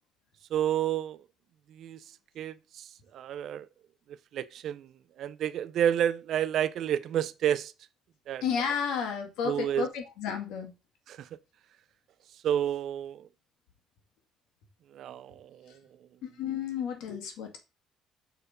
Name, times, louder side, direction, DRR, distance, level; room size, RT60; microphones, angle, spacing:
voice 1, 0.5-1.2 1.8-2.0 2.4-2.9 3.1-3.7 4.3-4.9 5.2-7.7 8.3-8.4 9.4-9.8 11.1-11.3 12.4-13.3 14.9-15.7, right 10 dB, 50° right, 0.5 m, -30 dB
voice 2, 8.4-10.7 16.4-17.6, left 7 dB, 80° left, 2.2 m, -32 dB
6.7 x 4.7 x 5.0 m
cardioid pair, 175°, 0 cm